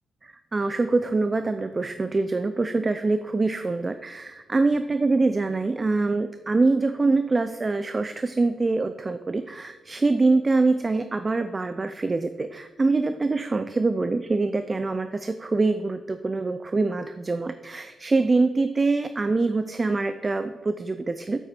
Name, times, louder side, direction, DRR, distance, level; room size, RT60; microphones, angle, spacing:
voice 1, 0.5-21.4, right 3 dB, 25° right, 10 dB, 0.4 m, -24 dB
8.9 x 8.1 x 4.4 m, 1.4 s
wide cardioid pair, 130°, 0 cm